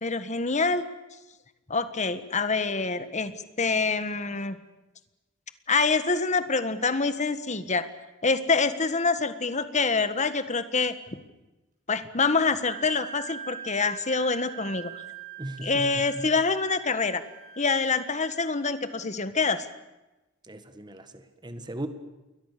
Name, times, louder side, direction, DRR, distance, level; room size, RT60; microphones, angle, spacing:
voice 1, 0.0-0.9 1.7-3.3 3.6-4.6 5.7-7.9 8.2-10.9 11.9-14.9 15.6-17.2 17.6-19.7, left 4 dB, 35° left, 11 dB, 1.6 m, -26 dB
Wind instrument woodwind instrument, 12.6-18.4, right 9 dB, 40° right, 7.2 m, -43 dB
voice 2, 15.4-16.3 20.4-21.9, right 1 dB, 20° right, 9 dB, 1.6 m, -38 dB
28.5 x 22.0 x 6.8 m, 1.0 s
head